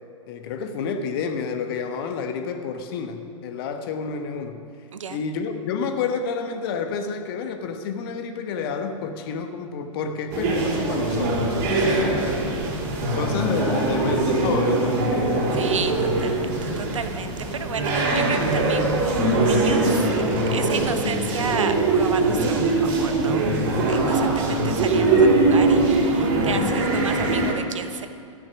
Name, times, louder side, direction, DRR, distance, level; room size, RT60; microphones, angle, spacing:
voice 1, 0.3-4.6 5.1-12.6 13.1-15.0, left 5 dB, 45° left, 6 dB, 1.2 m, -29 dB
voice 2, 4.9-5.2 11.7-12.2 12.4-12.5 15.5-20.2 20.5-28.1, right 6 dB, 70° right, 10 dB, 0.9 m, -32 dB
sound 1, 10.3-27.5, right 2 dB, 40° right, 3.0 m, -22 dB
13.5 x 9.4 x 6.1 m, 2.6 s
figure-of-eight pair, 105°, 17 cm